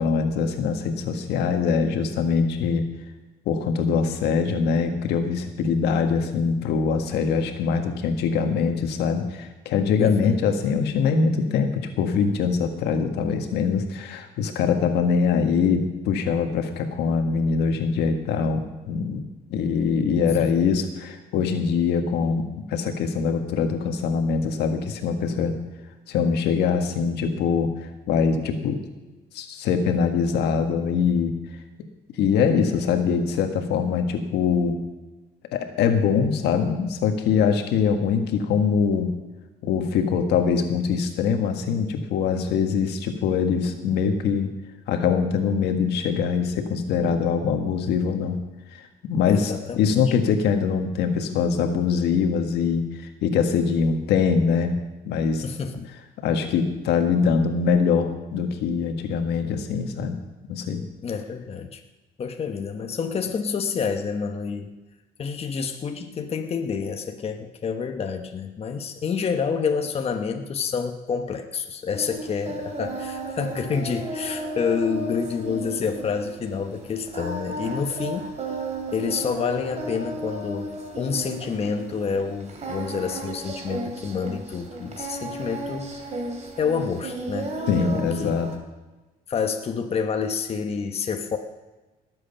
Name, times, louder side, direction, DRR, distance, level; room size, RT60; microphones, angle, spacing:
voice 1, 0.0-2.8 3.5-19.2 19.5-25.5 26.1-27.7 28.1-28.8 29.3-31.3 32.2-34.8 35.5-39.2 39.6-44.5 44.9-48.4 48.7-54.8 55.1-55.4 56.2-60.2 60.5-60.8 87.7-88.5, left 6 dB, 80° left, 6 dB, 1.6 m, -23 dB
voice 2, 10.0-10.4 20.3-20.5 49.3-50.2 55.4-55.9 61.0-61.8 62.2-64.7 65.2-78.3 78.9-86.1 86.6-88.3 89.3-91.4, left 6 dB, 35° left, 5 dB, 1.1 m, -28 dB
Singing, 71.9-88.6, right 2 dB, 40° right, 2.9 m, -34 dB
19.0 x 8.0 x 5.6 m, 1.1 s
cardioid pair, 110°, 17 cm